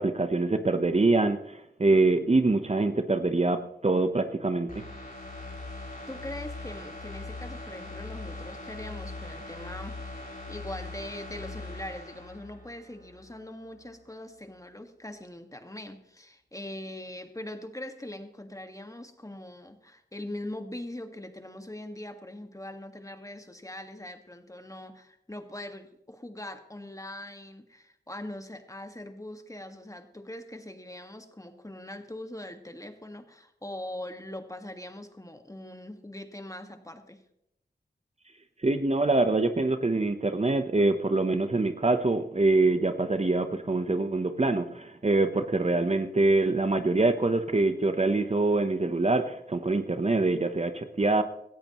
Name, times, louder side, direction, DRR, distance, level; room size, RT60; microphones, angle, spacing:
voice 1, 0.0-4.7 38.6-51.2, right 2 dB, 35° right, 9 dB, 0.9 m, -25 dB
sound 1, 4.7-13.4 13.7-13.8, left 2 dB, 50° left, 4.6 m, -41 dB
voice 2, 6.1-10.1 10.5-37.2, left 1 dB, 15° left, 7 dB, 1.7 m, -41 dB
17.5 x 14.0 x 3.1 m, 0.78 s
wide cardioid pair, 55°, 18 cm